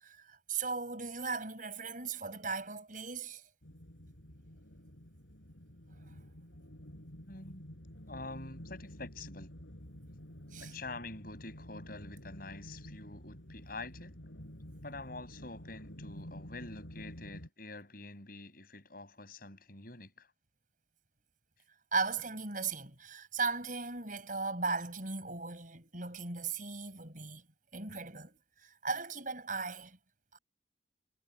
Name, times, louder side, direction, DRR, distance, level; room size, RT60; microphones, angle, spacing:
voice 1, 0.0-3.4 6.0-6.1 10.5-10.7 21.9-27.4 27.7-30.0 30.3-30.4, right 4 dB, 45° right, 6.5 m, -37 dB
sound 1, 3.6-17.5, equal, 90° left, 6.7 m, -50 dB
voice 2, 7.2-7.6 8.1-9.5 10.6-14.2 14.8-20.3, left 2 dB, 50° left, 7.9 m, -46 dB
head